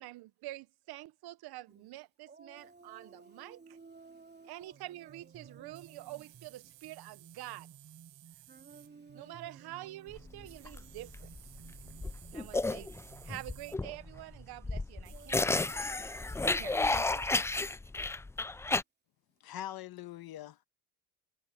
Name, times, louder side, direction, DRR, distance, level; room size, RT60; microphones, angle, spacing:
voice 1, 0.0-3.8 4.4-7.7 9.1-11.3 12.3-12.9 13.2-15.9 16.4-17.3, right 16 dB, 65° right, 1.2 m, -47 dB
voice 2, 2.3-4.8 5.4-6.1 8.5-9.6 10.3-11.0 11.6-12.5 15.1-16.3, right 4 dB, 25° right, 3.3 m, -57 dB
sound 1, 4.6-15.1, right 7 dB, 45° right, 4.8 m, -58 dB
sound 2, 5.7-8.9 10.4-13.8 15.0-17.7, right 20 dB, 85° right, 5.0 m, -58 dB
sound 3, 10.1-18.8, left 3 dB, 5° left, 0.4 m, -32 dB
voice 3, 19.4-20.7, left 12 dB, 60° left, 1.5 m, -43 dB
cardioid pair, 100°, 41 cm